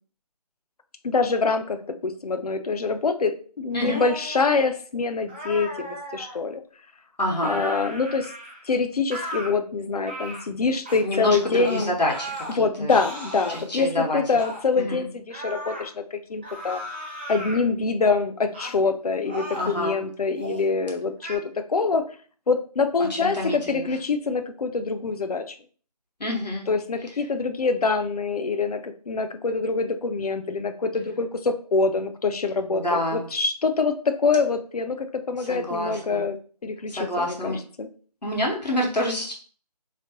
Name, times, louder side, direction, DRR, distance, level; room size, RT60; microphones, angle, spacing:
voice 1, 1.0-6.6 7.4-8.3 8.6-11.9 12.6-16.8 17.3-22.0 22.5-25.5 26.7-36.4 36.6-37.9, left 4 dB, 65° left, 8 dB, 0.5 m, -25 dB
sound 1, 3.7-4.6 5.3-6.4 7.4-8.7 9.1-9.5 10.0-10.5 10.9-11.0 11.6-12.6 12.9-13.6 14.4-14.6 15.3-15.9 16.4-17.6 18.5-18.8 19.2-19.8 20.3-20.7 21.2-21.4, equal, 15° right, 0.5 m, -36 dB
voice 2, 7.2-7.6 11.0-13.0 13.5-14.2 14.8-15.1 19.6-20.0 23.1-23.9 26.2-26.7 32.7-33.3 35.4-36.2 36.9-37.6 38.2-39.3, left 1 dB, 90° left, -1 dB, 1.3 m, -27 dB
3.1 x 2.9 x 2.9 m, 0.42 s
figure-of-eight pair, 160°, 21 cm